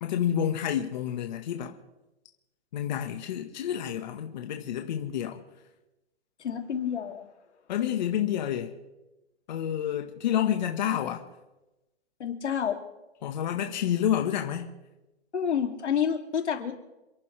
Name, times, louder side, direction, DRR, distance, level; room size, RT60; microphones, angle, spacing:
voice 1, 0.0-1.8 2.7-5.4 7.7-8.7 9.5-11.2 13.2-14.7, left 10 dB, 40° left, 1.6 m, -29 dB
voice 2, 6.4-7.3 12.2-12.8 15.3-16.8, left 8 dB, 85° left, 3.0 m, -29 dB
29.0 x 11.0 x 3.4 m
hypercardioid pair, 165°, 34 cm